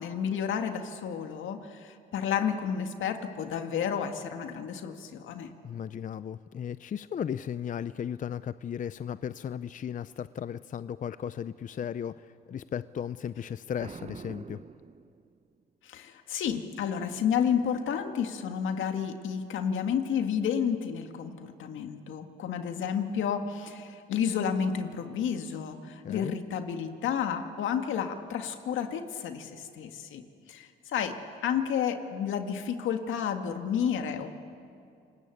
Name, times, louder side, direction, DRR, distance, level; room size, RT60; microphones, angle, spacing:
voice 1, 0.0-5.5 15.8-30.2 30.5-34.4, left 7 dB, 80° left, 6 dB, 2.0 m, -31 dB
voice 2, 5.6-14.6 26.0-26.4, left 8 dB, 40° left, 15 dB, 0.5 m, -36 dB
Boom, 13.8-15.6, right 5 dB, 35° right, 1.0 m, -45 dB
28.5 x 19.5 x 8.5 m, 2.5 s
cardioid pair, 90°, 20 cm